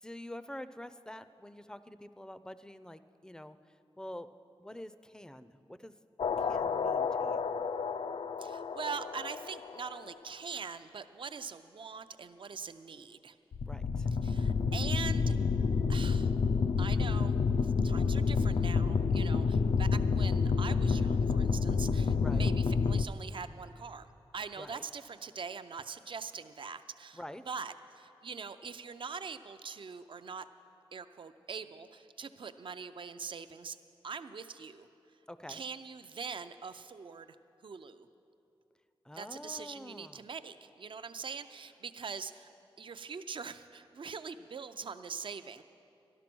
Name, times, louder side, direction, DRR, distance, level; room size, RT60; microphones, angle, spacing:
voice 1, 0.0-3.6 4.0-4.3 4.6-5.9 6.4-7.5 13.6-14.1 19.3-19.8 22.2-22.5 24.6-24.8 27.1-27.4 35.3-35.6 39.1-40.2, left 1 dB, 5° left, 13 dB, 0.4 m, -47 dB
sound 1, 6.2-10.1 13.5-23.0, left 5 dB, 70° left, 0.4 m, -29 dB
voice 2, 8.4-13.4 14.2-15.4 15.9-16.3 16.8-17.4 17.6-24.1 24.3-30.5 30.9-33.8 34.0-34.9 35.5-37.4 37.6-38.1 39.1-42.5 42.8-45.6, right 5 dB, 60° right, 11 dB, 0.5 m, -43 dB
12.5 x 12.0 x 6.1 m, 2.7 s
wide cardioid pair, 90°, 10 cm